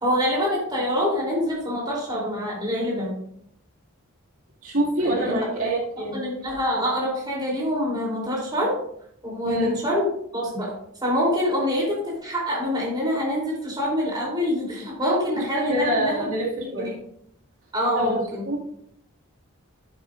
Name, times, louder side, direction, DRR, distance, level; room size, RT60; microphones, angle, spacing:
voice 1, 0.0-3.2 5.0-5.5 6.1-8.8 9.2-10.1 10.3-10.7 11.0-16.3 16.8-16.9 17.7-18.4, equal, 20° right, -4 dB, 3.3 m, -25 dB
voice 2, 4.6-6.2 9.4-9.8 15.4-16.9 17.9-18.7, right 1 dB, 80° right, -3 dB, 2.2 m, -26 dB
11.5 x 7.9 x 2.5 m, 0.70 s
head